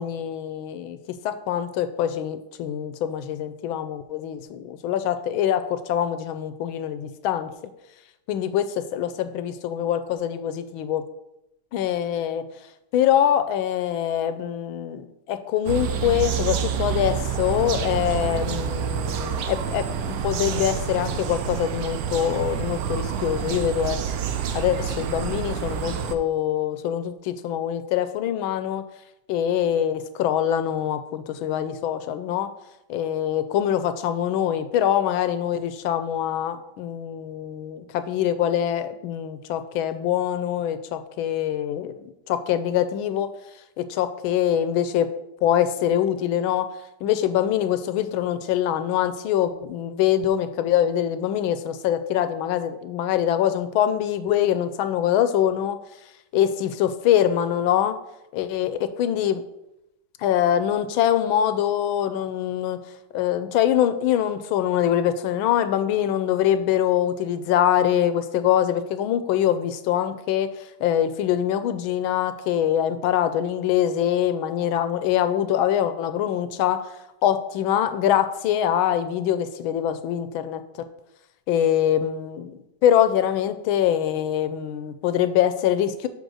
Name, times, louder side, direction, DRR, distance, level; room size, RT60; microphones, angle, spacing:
voice 1, 0.0-7.5 8.3-11.0 11.7-12.5 12.9-24.0 24.5-28.9 29.3-32.5 32.9-43.3 43.8-45.1 45.4-46.7 47.0-55.8 56.3-57.9 58.3-59.4 60.2-62.8 63.1-76.8 77.2-80.6 81.5-86.1, left 10 dB, 85° left, 11 dB, 1.4 m, -24 dB
sound 1, 15.6-26.1, right 7 dB, 75° right, 0.8 m, -28 dB
5.6 x 5.3 x 6.3 m, 0.87 s
omnidirectional pair, 2.2 m